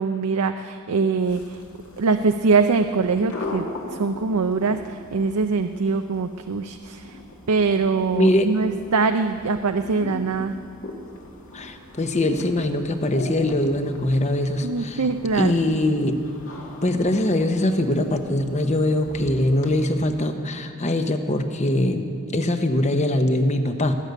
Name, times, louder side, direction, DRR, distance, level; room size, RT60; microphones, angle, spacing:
voice 1, 0.0-1.6 2.0-7.2 7.5-10.6 14.6-15.5, right 4 dB, 85° right, 8 dB, 0.5 m, -23 dB
sound 1, 1.2-20.5, left 1 dB, 70° left, 2.2 m, -40 dB
voice 2, 8.1-8.5 11.5-15.0 15.3-16.2 16.8-23.9, left 1 dB, 30° left, 7 dB, 0.9 m, -22 dB
20.0 x 6.7 x 9.3 m, 2.5 s
head